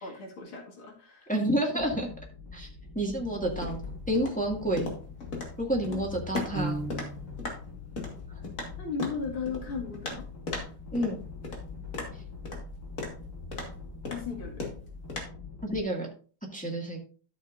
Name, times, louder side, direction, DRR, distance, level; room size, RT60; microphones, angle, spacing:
voice 1, 0.0-1.3 5.9-6.1 6.4-6.6 8.8-10.3 14.1-14.6, left 5 dB, 80° left, 0 dB, 2.9 m, -36 dB
voice 2, 1.3-2.1 2.5-2.7 2.9-3.8 4.1-4.9 5.6-6.8 10.9-11.2 15.6-16.1 16.5-17.0, right 1 dB, 5° left, -1 dB, 1.7 m, -29 dB
sound 1, 1.8-15.8, left 4 dB, 60° left, 4.6 m, -44 dB
sound 2, 3.3-15.2, left 3 dB, 40° left, 2.2 m, -39 dB
Piano, 6.5-7.5, right 2 dB, 40° right, 0.7 m, -34 dB
12.5 x 6.8 x 2.6 m, 0.39 s
omnidirectional pair, 2.3 m